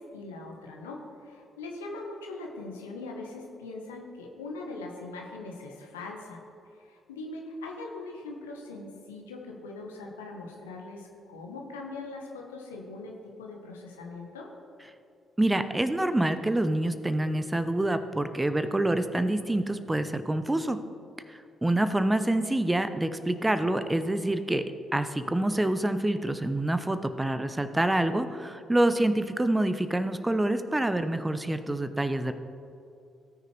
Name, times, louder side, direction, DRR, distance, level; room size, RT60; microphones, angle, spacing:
voice 1, 0.0-6.4 6.8-14.5, left 2 dB, 80° left, 1 dB, 1.1 m, -41 dB
voice 2, 15.4-20.8 21.3-32.3, right 1 dB, 15° right, 11 dB, 0.6 m, -27 dB
18.0 x 6.6 x 3.3 m, 2.6 s
figure-of-eight pair, 40°, 0 cm